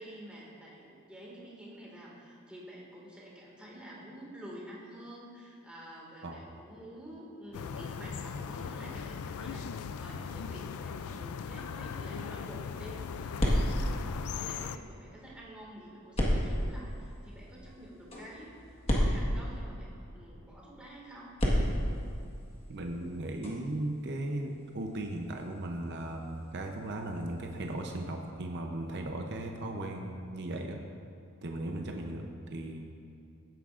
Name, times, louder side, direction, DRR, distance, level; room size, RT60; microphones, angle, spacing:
voice 1, 0.0-21.3, right 1 dB, 5° right, -5 dB, 2.0 m, -49 dB
sound 1, 7.5-14.8, left 6 dB, 75° left, 0.4 m, -39 dB
sound 2, 12.7-15.0 16.1-20.1 21.3-28.0, equal, 25° left, 1.5 m, -34 dB
voice 2, 22.7-30.8 31.4-32.8, right 1 dB, 50° right, 2 dB, 0.7 m, -37 dB
16.0 x 9.1 x 2.5 m, 2.6 s
head